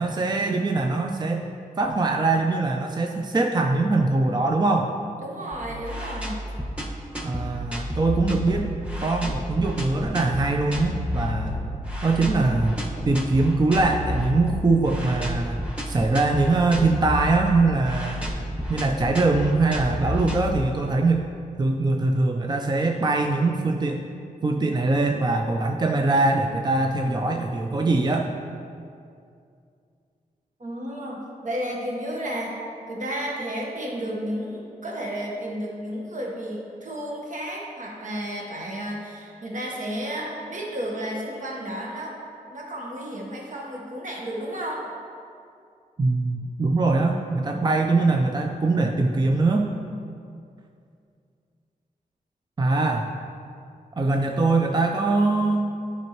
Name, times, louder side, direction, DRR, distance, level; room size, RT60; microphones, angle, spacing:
voice 1, 0.0-1.4 1.8-4.9 7.2-8.7 9.0-11.7 12.0-12.7 13.1-18.2 18.7-21.3 21.6-24.0 24.4-28.3 46.0-49.7 52.6-53.1 54.0-55.7, right 3 dB, 30° right, 3 dB, 0.5 m, -22 dB
voice 2, 5.2-6.4 30.6-32.6 32.9-42.2 42.5-44.8, equal, 60° right, -2 dB, 1.3 m, -32 dB
sound 1, 5.5-21.1, left 1 dB, 10° right, 1.4 m, -31 dB
11.0 x 5.4 x 3.0 m, 2.4 s
cardioid pair, 65°, 15 cm